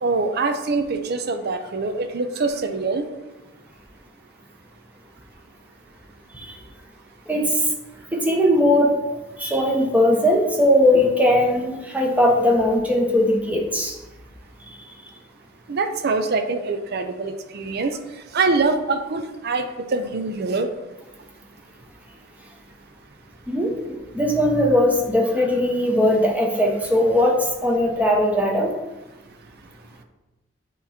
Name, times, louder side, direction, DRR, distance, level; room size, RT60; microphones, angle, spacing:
voice 1, 0.0-3.1 15.7-18.0 18.3-20.7, right 3 dB, 55° right, 8 dB, 0.5 m, -24 dB
voice 2, 7.3-7.6 8.1-8.9 9.4-13.9 23.5-28.7, left 1 dB, 10° right, 0 dB, 0.9 m, -19 dB
8.1 x 3.0 x 4.2 m, 1.1 s
head